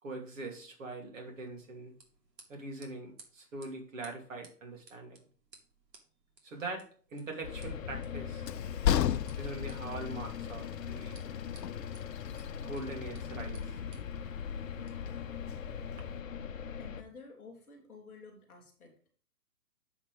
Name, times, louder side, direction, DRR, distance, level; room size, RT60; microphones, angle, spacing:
voice 1, 0.0-1.9 2.5-5.2 6.4-8.5 9.4-11.2 12.6-13.8, right 2 dB, 50° right, 2 dB, 2.7 m, -42 dB
sound 1, 1.2-16.0, right 3 dB, 85° right, 2.7 m, -62 dB
sound 2, 7.4-17.0, left 6 dB, 55° left, 0.8 m, -41 dB
Train, 7.6-16.2, left 10 dB, 85° left, 0.6 m, -37 dB
voice 2, 16.8-19.1, left 4 dB, ahead, -14 dB, 1.4 m, -52 dB
7.3 x 6.0 x 4.9 m, 0.42 s
hypercardioid pair, 170°, 48 cm